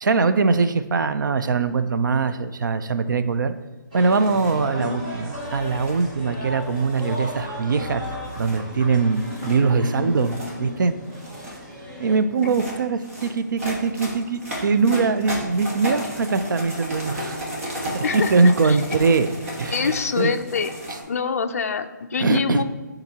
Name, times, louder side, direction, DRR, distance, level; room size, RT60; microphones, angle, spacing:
voice 1, 0.0-3.5 3.9-8.1 8.4-11.0 12.0-17.5 17.9-19.3 19.6-20.3 22.2-22.6, right 4 dB, 75° right, 11 dB, 0.5 m, -22 dB
sound 1, 3.9-12.2, left 1 dB, 20° right, 0.8 m, -34 dB
sound 2, 4.1-4.6 5.5-6.1 6.7-7.5 8.2-8.6 9.1-9.6 10.1-10.5 11.0-11.6 12.3-21.0, equal, 45° right, 1.5 m, -34 dB
voice 2, 18.0-18.8 19.7-20.7 21.1-22.6, left 6 dB, 50° left, 6 dB, 0.4 m, -25 dB
10.5 x 3.9 x 2.8 m, 1.2 s
hypercardioid pair, 180°, 10 cm